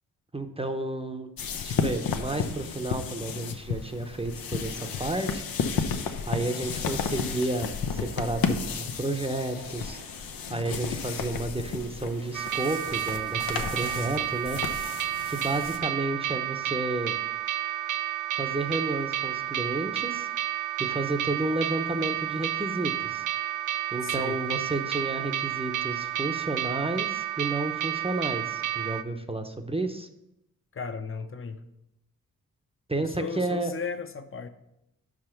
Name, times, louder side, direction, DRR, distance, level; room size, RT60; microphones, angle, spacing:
voice 1, 0.3-1.3 1.6-5.4 6.2-10.0 10.5-14.6 15.3-17.1 18.4-20.3 20.8-23.2 23.9-30.1 32.9-33.7, right 2 dB, 15° right, 6 dB, 0.7 m, -31 dB
sound 1, 1.4-15.8, left 6 dB, 80° left, 0.7 m, -33 dB
sound 2, 6.1-14.3, right 3 dB, 85° right, 1.2 m, -51 dB
sound 3, 12.3-29.0, right 12 dB, 60° right, 0.4 m, -31 dB
voice 2, 24.0-24.4 30.7-31.6 33.0-34.5, left 5 dB, 40° left, 9 dB, 0.8 m, -36 dB
5.5 x 4.9 x 5.8 m, 0.83 s
cardioid pair, 50°, 34 cm